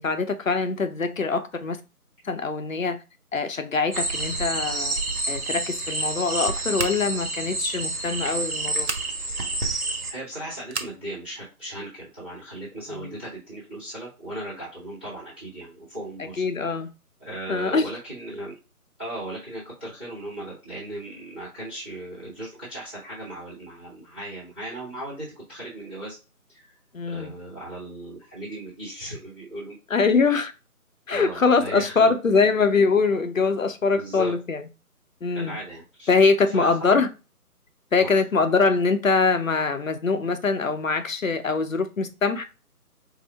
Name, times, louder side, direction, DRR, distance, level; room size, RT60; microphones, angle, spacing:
voice 1, 0.0-1.8 2.3-3.0 3.3-5.0 5.3-8.9 12.9-13.1 16.4-16.9 17.5-17.9 26.9-27.3 29.9-30.5 31.1-34.6 35.2-35.5 36.1-37.1 37.9-42.4, left 4 dB, 60° left, 0.6 m, -23 dB
sound 1, 3.9-10.1, right 2 dB, 70° right, 1.2 m, -29 dB
Scissors, 6.7-7.3 8.8-9.1 10.7-11.0, right 3 dB, 50° right, 0.6 m, -32 dB
voice 2, 10.1-16.4 17.2-18.5 19.0-26.2 26.5-26.7 27.0-29.8 31.1-32.1 33.9-34.3 35.3-36.1 36.5-37.0 38.0-38.2, right 1 dB, 5° right, 0.9 m, -37 dB
4.5 x 2.0 x 3.3 m
figure-of-eight pair, 155°, 45 cm